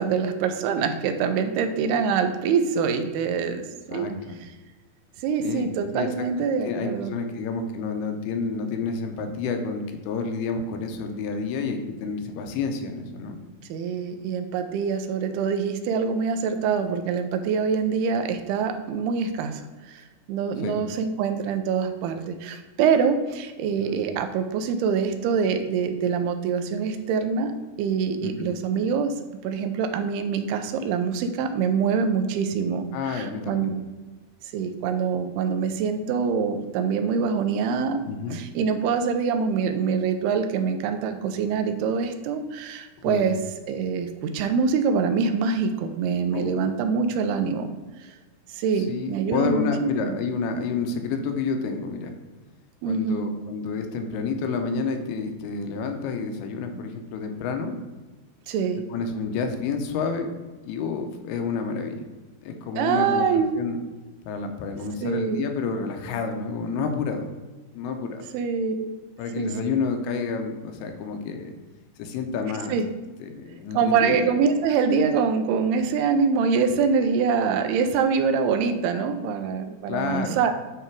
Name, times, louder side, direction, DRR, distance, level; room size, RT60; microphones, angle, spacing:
voice 1, 0.0-3.6 3.9-4.1 5.2-7.1 13.7-27.5 27.8-29.1 29.4-33.7 34.4-38.1 38.3-43.4 43.7-47.7 48.0-48.2 48.5-50.2 52.8-53.3 58.5-58.8 62.8-63.5 65.0-65.5 68.3-68.9 69.4-69.5 72.7-72.9 73.7-80.5, right 6 dB, 85° right, 7 dB, 2.6 m, -25 dB
voice 2, 3.9-4.4 5.4-5.7 5.9-6.3 6.6-13.4 20.6-20.7 23.8-24.0 28.2-28.5 32.9-33.7 38.0-38.4 43.0-43.3 46.3-46.6 48.8-52.1 52.8-57.8 58.9-60.3 60.6-62.0 62.4-63.8 64.2-67.3 67.7-68.3 69.2-71.5 72.0-72.8 73.2-74.2 79.9-80.4, left 5 dB, 80° left, 5 dB, 2.7 m, -29 dB
9.8 x 3.3 x 4.6 m, 1.2 s
omnidirectional pair, 4.6 m